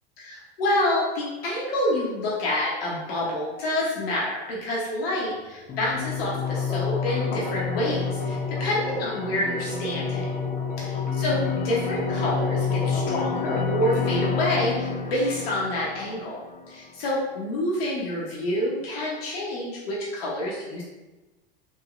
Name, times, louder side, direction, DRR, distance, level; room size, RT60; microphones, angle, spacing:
voice 1, 0.2-10.2 10.8-16.4 16.7-20.8, left 1 dB, 70° left, -6 dB, 0.8 m, -28 dB
sound 1, 5.7-16.7, left 5 dB, 30° left, 0.5 m, -28 dB
3.0 x 2.7 x 2.4 m, 1.1 s
hypercardioid pair, 80°, 31 cm